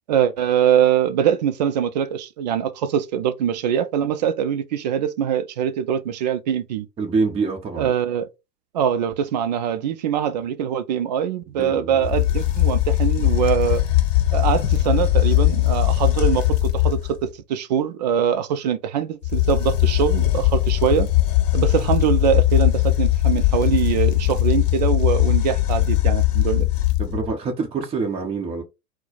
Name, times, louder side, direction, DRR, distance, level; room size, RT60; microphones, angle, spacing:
voice 1, 0.1-6.9 7.8-8.3 8.7-13.8 14.3-21.1 21.5-26.7, right 9 dB, 30° right, 0.4 m, -23 dB
voice 2, 7.0-7.9 11.5-12.1 27.0-28.6, right 4 dB, 10° right, 0.8 m, -26 dB
sound 1, 12.0-17.2 19.2-27.3, left 15 dB, 55° left, 0.9 m, -19 dB
4.3 x 2.1 x 4.0 m
figure-of-eight pair, 105°, 47 cm